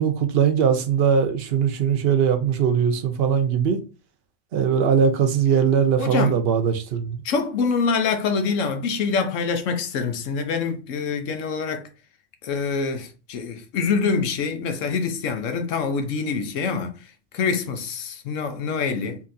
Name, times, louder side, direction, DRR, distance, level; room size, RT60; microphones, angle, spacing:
voice 1, 0.0-3.8 4.5-7.1, right 7 dB, 60° right, 0.8 m, -20 dB
voice 2, 6.0-6.4 7.2-11.9 12.4-19.2, left 5 dB, 80° left, 1.0 m, -25 dB
4.0 x 2.7 x 2.6 m
omnidirectional pair, 1.3 m